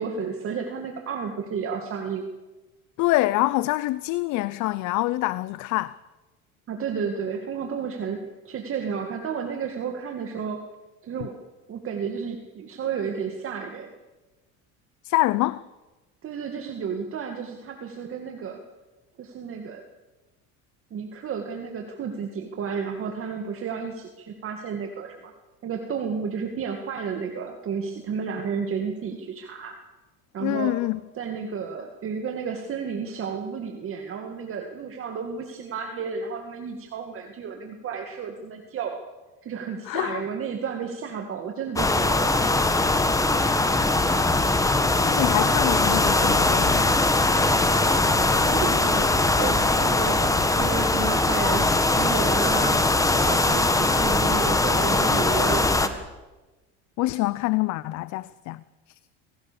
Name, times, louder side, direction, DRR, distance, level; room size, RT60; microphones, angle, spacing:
voice 1, 0.0-2.3 6.7-10.6 11.0-11.4 11.7-13.9 16.2-18.6 19.2-19.8 20.9-25.3 25.6-29.8 30.3-30.8 31.1-39.0 39.4-42.5 48.4-52.8 53.2-56.0, right 6 dB, 40° right, 2.3 m, -32 dB
voice 2, 3.0-6.0 15.0-15.6 30.4-31.0 39.9-40.2 45.0-46.9 57.0-58.6, left 18 dB, 60° left, 0.7 m, -25 dB
sound 1, 41.8-55.9, left 2 dB, 10° left, 1.6 m, -21 dB
25.0 x 17.5 x 7.0 m
cardioid pair, 120°, 33 cm